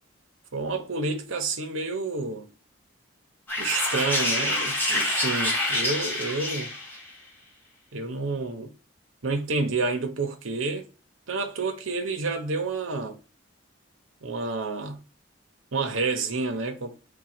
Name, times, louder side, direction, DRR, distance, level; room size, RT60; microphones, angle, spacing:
voice 1, 0.5-2.5 3.6-6.7 7.9-8.7 9.2-10.9 11.3-13.2 14.2-15.0 15.7-17.0, right 3 dB, 80° right, 0.8 m, -29 dB
sound 1, 3.5-7.1, left 1 dB, 10° left, 0.9 m, -27 dB
3.7 x 2.3 x 4.3 m
head